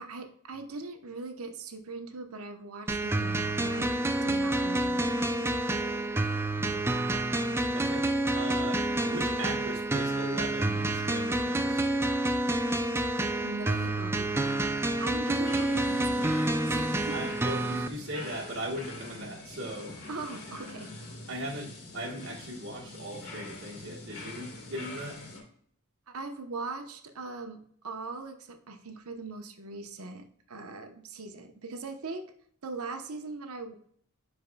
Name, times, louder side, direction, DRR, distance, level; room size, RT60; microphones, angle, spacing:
voice 1, 0.0-3.9 4.2-5.7 13.4-14.7 15.0-17.1 20.1-20.9 26.1-27.6 27.8-32.3 32.6-33.7, right 3 dB, 80° right, 6 dB, 0.9 m, -40 dB
sound 1, 2.9-17.9, right 1 dB, 10° right, 0.4 m, -28 dB
voice 2, 7.7-8.1 8.3-11.9 17.1-20.0 21.3-25.2, right 1 dB, 60° right, -3 dB, 1.3 m, -39 dB
sound 2, 15.4-25.4, left 2 dB, 90° left, 2.6 m, -44 dB
10.5 x 4.6 x 2.3 m, 0.63 s
head